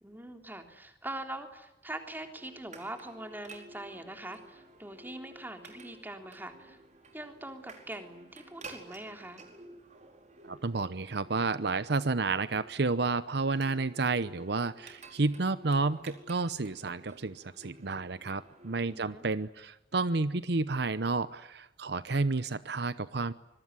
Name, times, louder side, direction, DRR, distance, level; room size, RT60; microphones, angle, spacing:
voice 1, 0.0-6.8 7.1-9.4 18.9-19.2, right 1 dB, 10° right, 5 dB, 3.5 m, -43 dB
sound 1, 2.4-19.0, right 2 dB, 40° right, 4.7 m, -53 dB
voice 2, 10.4-23.3, right 3 dB, 65° right, 15 dB, 0.9 m, -31 dB
25.5 x 22.0 x 9.7 m, 0.94 s
head